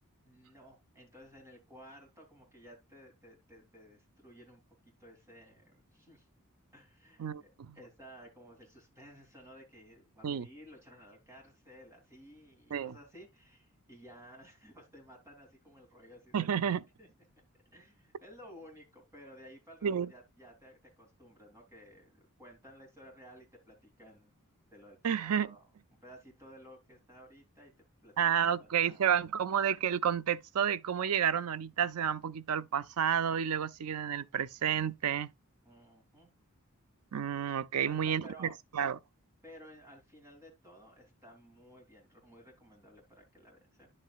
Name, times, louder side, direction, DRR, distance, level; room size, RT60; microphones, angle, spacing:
voice 1, 0.2-4.6 5.0-6.3 6.7-17.1 17.7-24.4 24.7-25.7 26.0-27.7 28.0-29.1 35.6-36.3 37.8-38.5 39.4-43.9, equal, 15° right, 3.1 m, -55 dB
voice 2, 7.2-7.8 10.2-10.5 12.7-12.9 16.3-16.8 19.8-20.1 25.0-25.5 28.2-35.3 37.1-38.5 38.7-39.0, right 8 dB, 80° right, 0.5 m, -30 dB
10.0 x 7.5 x 2.4 m
head